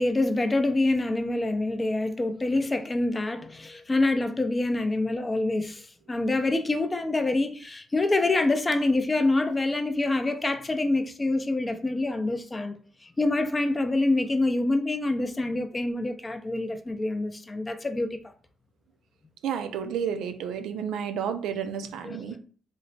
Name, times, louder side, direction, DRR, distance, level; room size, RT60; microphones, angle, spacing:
voice 1, 0.0-12.8 13.0-18.2 22.0-22.4, left 2 dB, 20° left, 0.4 m, -26 dB
voice 2, 19.4-22.4, right 7 dB, 80° right, 0.3 m, -31 dB
3.1 x 2.0 x 3.9 m
cardioid pair, 90°, 0 cm